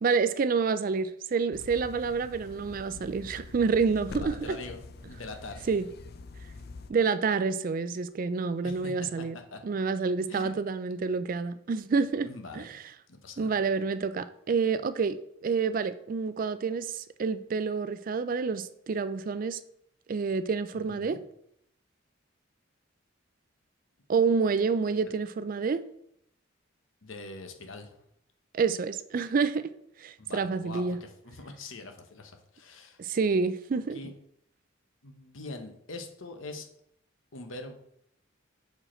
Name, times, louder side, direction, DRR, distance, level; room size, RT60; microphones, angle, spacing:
voice 1, 0.0-4.6 5.7-5.9 6.9-9.4 9.6-12.3 12.5-12.8 13.4-19.6 20.1-21.2 24.1-25.8 28.5-29.7 30.0-31.0 33.0-34.0, right 5 dB, 45° right, 13 dB, 0.3 m, -28 dB
sound 1, 1.5-6.9, left 3 dB, 50° left, 0.5 m, -45 dB
voice 2, 4.2-4.8 5.1-5.7 8.6-9.6 10.3-10.5 12.2-12.7 13.1-13.6 20.7-21.2 27.0-28.0 30.2-33.0 33.9-34.1 35.0-36.7 37.3-37.7, left 2 dB, 75° left, 5 dB, 1.0 m, -43 dB
6.4 x 5.1 x 4.3 m, 0.73 s
head